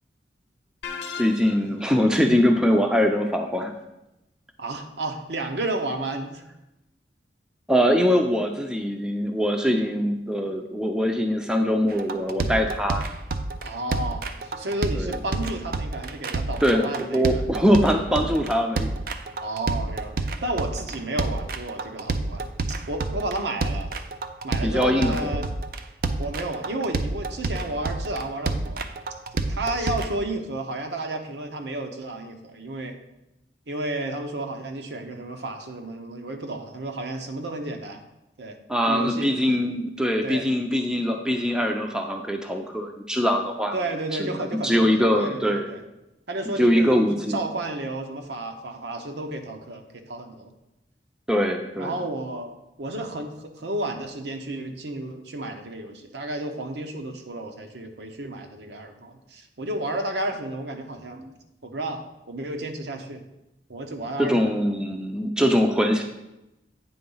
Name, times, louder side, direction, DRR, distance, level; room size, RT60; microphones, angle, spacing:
sound 1, 0.8-1.9, left 6 dB, 80° left, 0.6 m, -36 dB
voice 1, 1.2-3.7 7.7-13.1 15.0-15.1 16.6-18.9 24.6-25.3 38.7-43.7 44.2-45.7 46.6-47.5 51.3-51.9 64.2-66.0, equal, 5° right, 3 dB, 0.5 m, -22 dB
voice 2, 4.6-6.4 13.6-17.4 19.4-22.5 22.9-23.9 24.4-25.5 26.2-28.9 29.3-33.0 33.7-38.0 38.4-38.6 38.9-39.3 40.2-40.5 43.7-45.8 46.3-50.5 51.8-52.5 52.8-61.3 61.6-63.2 63.7-64.7, right 2 dB, 75° right, 4 dB, 0.9 m, -32 dB
sound 2, 11.9-30.1, right 3 dB, 55° right, 0.4 m, -29 dB
8.7 x 3.9 x 5.5 m, 0.92 s
head